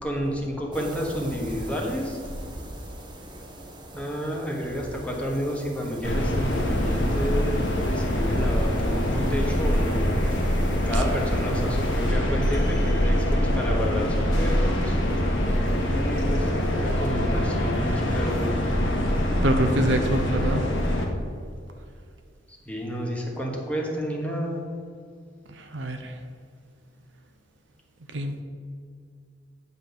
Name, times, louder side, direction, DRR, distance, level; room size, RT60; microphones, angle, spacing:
voice 1, 0.0-2.2 3.9-10.1 10.8-13.2 13.5-15.0 15.9-18.7 22.5-24.6, equal, 5° left, -1 dB, 1.3 m, -30 dB
sound 1, 0.7-12.1, equal, 25° right, 1.0 m, -37 dB
sound 2, 6.0-21.0, equal, 80° left, 1.5 m, -24 dB
voice 2, 19.4-20.6 25.6-26.1 28.1-28.4, right 1 dB, 70° right, 6 dB, 0.7 m, -25 dB
9.2 x 4.1 x 7.0 m, 2.2 s
head